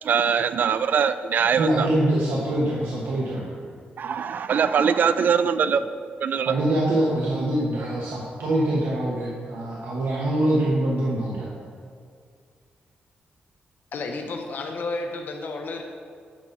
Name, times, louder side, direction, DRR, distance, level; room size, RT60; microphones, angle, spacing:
voice 1, 0.0-1.9 4.0-5.9 6.2-6.6, right 7 dB, 55° right, 12 dB, 0.3 m, -22 dB
voice 2, 1.6-3.5 6.4-11.5, right 1 dB, 90° right, -4 dB, 1.1 m, -24 dB
voice 3, 13.9-15.8, left 3 dB, 60° left, 3 dB, 0.6 m, -31 dB
9.0 x 4.0 x 5.7 m, 2.2 s
wide cardioid pair, 145°, 4 cm